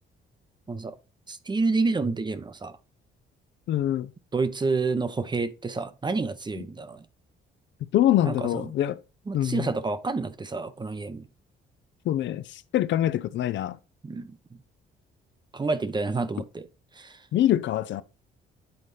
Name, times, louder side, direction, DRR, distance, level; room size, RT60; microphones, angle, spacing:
voice 1, 1.3-2.7 4.3-7.0 8.3-8.7 9.3-11.2 14.0-14.4 15.5-16.7 17.0-17.2, right 3 dB, 20° right, 0.6 m, -29 dB
voice 2, 3.7-4.1 7.9-9.0 9.3-9.7 12.1-13.8 17.3-18.0, left 12 dB, 70° left, 0.5 m, -24 dB
9.3 x 4.0 x 3.2 m
cardioid pair, 90°, 20 cm